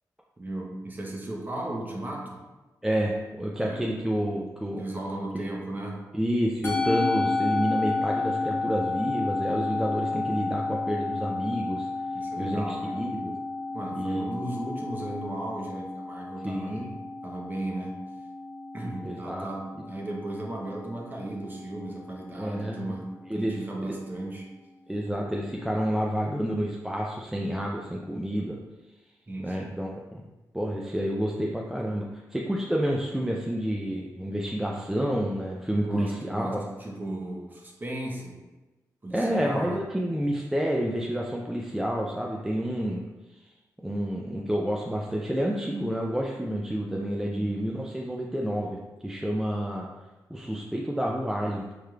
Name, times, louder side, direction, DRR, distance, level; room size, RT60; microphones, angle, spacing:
voice 1, 0.4-2.4 3.6-3.9 4.8-6.0 12.1-13.0 13.7-16.9 17.2-18.1 18.7-24.5 29.3-29.7 35.8-38.4 39.0-39.8 47.3-47.6, right 1 dB, 25° right, -1 dB, 0.9 m, -36 dB
voice 2, 2.8-4.8 5.3-5.5 6.1-11.9 12.4-13.3 14.0-14.2 16.4-17.0 19.0-19.5 22.4-22.9 23.3-23.6 23.9-24.0 24.9-28.6 29.4-30.2 30.5-36.6 39.1-43.0 43.4-43.5 43.8-48.8 49.0-49.9 50.3-51.6, equal, 5° right, -2 dB, 0.4 m, -29 dB
Musical instrument, 6.6-25.1, left 3 dB, 30° left, 1.0 m, -32 dB
4.7 x 3.2 x 2.3 m, 1.1 s
cardioid pair, 80°, 7 cm